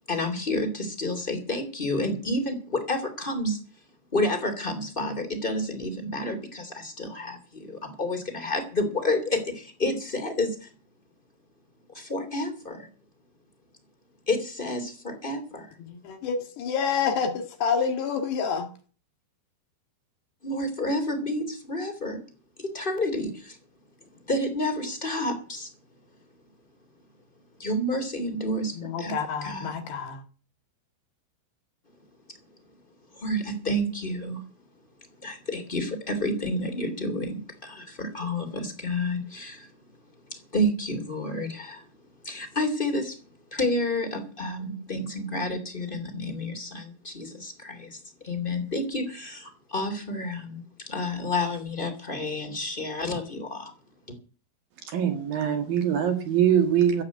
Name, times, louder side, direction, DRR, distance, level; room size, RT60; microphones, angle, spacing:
voice 1, 0.1-3.6 4.1-10.7 11.9-12.9 14.3-15.8 20.4-22.2 22.6-23.6 24.3-25.7 27.6-29.2 29.4-29.8 33.1-34.4 35.2-39.7 40.3-41.9 42.2-43.2 43.5-53.7 54.1-54.2, left 1 dB, 15° left, 2.3 m, -30 dB
voice 2, 15.8-18.7 28.8-30.2, left 6 dB, 65° left, 3.8 m, -28 dB
voice 3, 54.9-57.0, right 9 dB, 60° right, 3.1 m, -23 dB
15.0 x 8.3 x 8.3 m
omnidirectional pair, 5.4 m